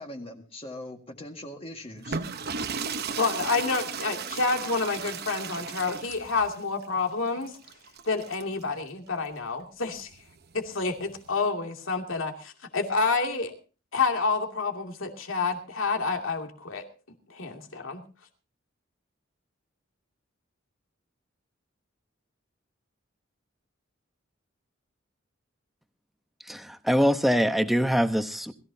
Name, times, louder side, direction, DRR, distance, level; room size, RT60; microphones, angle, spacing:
voice 1, 0.0-2.4, left 1 dB, 30° left, 1.8 m, -41 dB
sound 1, 2.0-8.6 9.9-11.4, right 5 dB, 55° right, 0.9 m, -36 dB
voice 2, 3.2-7.6 8.0-10.1 10.5-13.5 13.9-16.8 17.3-18.0, left 4 dB, 80° left, 2.6 m, -28 dB
voice 3, 26.5-28.5, equal, ahead, 1.0 m, -23 dB
21.5 x 15.0 x 2.8 m
head